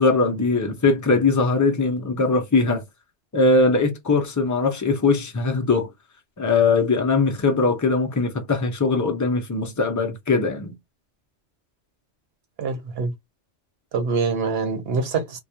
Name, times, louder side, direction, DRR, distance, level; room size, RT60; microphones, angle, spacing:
voice 1, 0.0-2.8 3.3-5.9 6.4-10.7, left 3 dB, 25° left, 0.4 m, -21 dB
voice 2, 12.6-13.1 13.9-15.4, right 4 dB, 60° right, 0.9 m, -25 dB
2.3 x 2.2 x 2.7 m
omnidirectional pair, 1.2 m